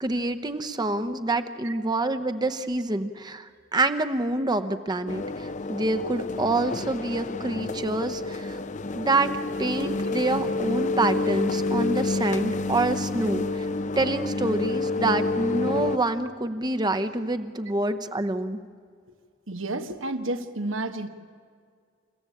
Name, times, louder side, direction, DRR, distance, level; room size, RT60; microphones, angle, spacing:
voice 1, 0.0-8.6 8.9-9.3 9.6-13.7 14.0-18.6, right 2 dB, 20° right, 8 dB, 0.9 m, -27 dB
sound 1, 5.1-16.0, left 3 dB, 40° left, 0.7 m, -28 dB
voice 2, 19.5-21.1, right 2 dB, 90° right, 8 dB, 1.6 m, -31 dB
29.0 x 15.0 x 8.5 m, 2.1 s
head